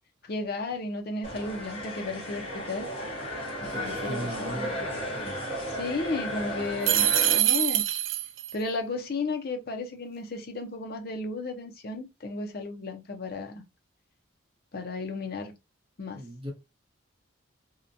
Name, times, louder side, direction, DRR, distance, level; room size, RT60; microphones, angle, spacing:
voice 1, 0.2-2.9 3.6-4.7 5.7-7.8 8.5-13.6 14.7-15.5 16.0-16.2, left 3 dB, 50° left, 0.6 m, -34 dB
sound 1, 1.2-7.4, equal, 25° left, 1.0 m, -34 dB
voice 2, 3.7-5.4 6.3-6.6 16.1-16.5, right 1 dB, 25° right, 0.9 m, -39 dB
sound 2, 6.8-8.5, right 12 dB, 70° right, 0.3 m, -24 dB
2.8 x 2.1 x 2.5 m
head